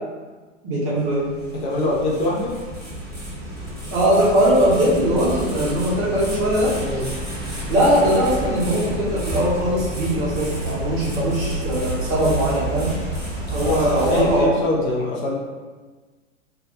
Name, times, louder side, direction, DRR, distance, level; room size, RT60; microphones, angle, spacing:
voice 1, 0.6-1.3 3.9-6.8 7.7-12.9 13.5-14.5, equal, 30° right, -5 dB, 0.6 m, -20 dB
sound 1, 1.0-14.4, right 1 dB, ahead, 0.9 m, -30 dB
voice 2, 1.6-2.6 6.8-7.0 13.6-15.3, left 1 dB, 40° left, -4 dB, 0.5 m, -24 dB
2.2 x 2.1 x 2.8 m, 1.4 s
figure-of-eight pair, 105°, 38 cm